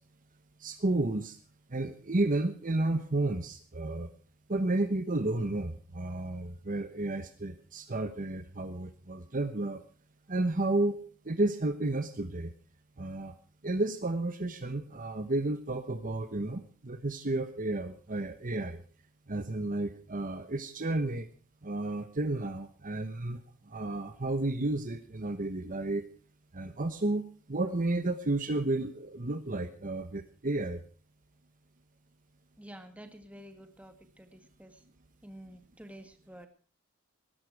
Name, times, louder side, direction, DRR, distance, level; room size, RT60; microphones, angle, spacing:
voice 1, 0.6-1.4 1.7-4.1 4.5-9.8 10.3-12.5 13.0-13.3 13.6-18.8 19.3-21.3 21.6-23.4 23.7-26.0 26.5-27.2 27.5-30.8, right 2 dB, 40° right, 9 dB, 1.1 m, -32 dB
voice 2, 32.6-34.8 35.2-36.5, equal, 5° right, 7 dB, 1.9 m, -50 dB
19.0 x 11.5 x 4.7 m, 0.39 s
head